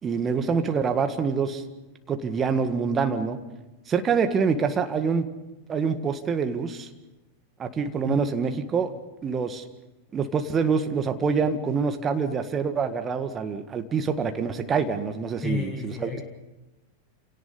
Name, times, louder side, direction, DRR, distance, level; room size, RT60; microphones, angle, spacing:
voice 1, 0.0-1.6 2.1-3.4 3.9-5.3 5.7-6.9 7.6-8.9 9.2-9.6 10.1-16.1, right 5 dB, 25° right, 8 dB, 1.8 m, -26 dB
voice 2, 15.4-16.2, left 3 dB, 5° left, -1 dB, 2.4 m, -31 dB
29.0 x 18.0 x 5.6 m, 1.1 s
figure-of-eight pair, 90°, 0 cm